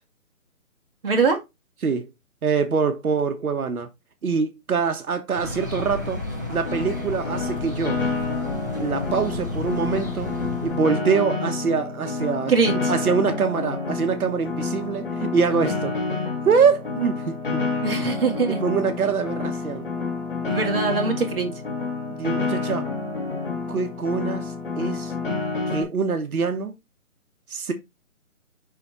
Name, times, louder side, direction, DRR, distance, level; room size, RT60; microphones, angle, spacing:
voice 1, 1.0-1.4 12.5-12.9 17.8-18.6 19.0-19.1 20.4-21.6, right 5 dB, 40° right, 2.1 m, -22 dB
voice 2, 2.4-3.9 4.2-6.2 6.5-8.0 8.8-10.3 10.6-12.5 12.9-15.9 16.4-17.6 18.6-19.9 22.1-22.9 23.7-25.1 25.7-26.7 27.5-27.7, right 5 dB, 85° right, 1.2 m, -24 dB
sound 1, 5.4-10.8, left 2 dB, 15° right, 0.7 m, -32 dB
Piano, 6.6-25.8, left 4 dB, 40° left, 1.7 m, -29 dB
5.6 x 4.2 x 4.2 m
hypercardioid pair, 170°, 42 cm